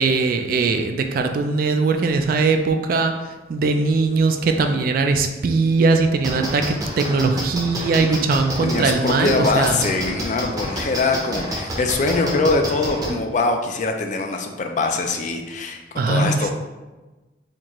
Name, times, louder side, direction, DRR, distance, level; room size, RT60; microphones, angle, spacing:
voice 1, 0.0-3.1 3.5-9.8 16.0-16.5, right 4 dB, 50° right, 6 dB, 0.3 m, -20 dB
sound 1, 6.2-13.1, right 1 dB, 20° right, 0.6 m, -28 dB
voice 2, 8.6-16.5, left 3 dB, 40° left, 4 dB, 0.3 m, -23 dB
4.4 x 2.4 x 2.9 m, 1.2 s
head